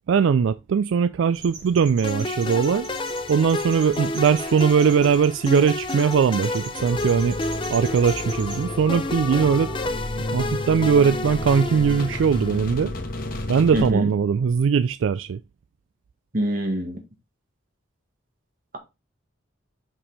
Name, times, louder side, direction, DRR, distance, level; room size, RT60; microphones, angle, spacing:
voice 1, 0.1-2.9 3.3-7.4 7.7-9.7 10.3-12.9 13.5-15.4, right 6 dB, 80° right, 0.3 m, -20 dB
sound 1, 1.3-8.6, right 3 dB, 60° right, 2.7 m, -42 dB
sound 2, 2.0-12.7, left 2 dB, 25° left, 0.6 m, -31 dB
sound 3, 6.8-13.9, left 2 dB, 50° left, 1.1 m, -32 dB
voice 2, 13.7-14.1 16.3-17.0, equal, 45° right, 1.8 m, -24 dB
5.7 x 5.4 x 4.1 m
head